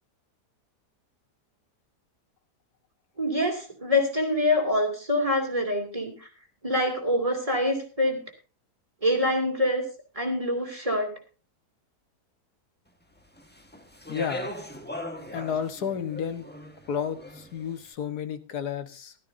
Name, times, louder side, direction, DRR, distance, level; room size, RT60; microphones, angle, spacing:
voice 1, 3.2-6.3 6.6-8.2 9.0-9.9 10.1-11.1, left 1 dB, 20° right, 3 dB, 2.8 m, -25 dB
Speech, 13.4-17.7, left 1 dB, 5° left, 1.2 m, -40 dB
voice 2, 14.1-14.5 15.3-16.4 16.9-19.2, left 7 dB, 70° left, 9 dB, 1.8 m, -31 dB
16.5 x 13.0 x 2.7 m, 0.36 s
omnidirectional pair, 1.8 m